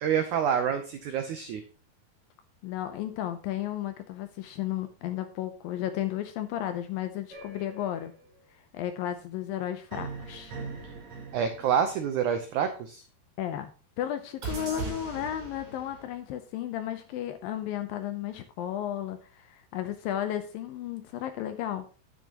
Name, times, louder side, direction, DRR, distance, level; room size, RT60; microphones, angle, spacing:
voice 1, 0.0-1.6 11.3-13.0, right 8 dB, 85° right, 7 dB, 1.7 m, -27 dB
voice 2, 2.6-8.1 8.7-10.6 13.4-13.7 14.0-21.9, left 11 dB, 80° left, 9 dB, 2.2 m, -33 dB
sound 1, 7.3-8.4 9.9-12.6 14.4-16.1, right 4 dB, 45° right, 5.6 m, -40 dB
10.0 x 9.4 x 2.9 m, 0.36 s
omnidirectional pair, 4.6 m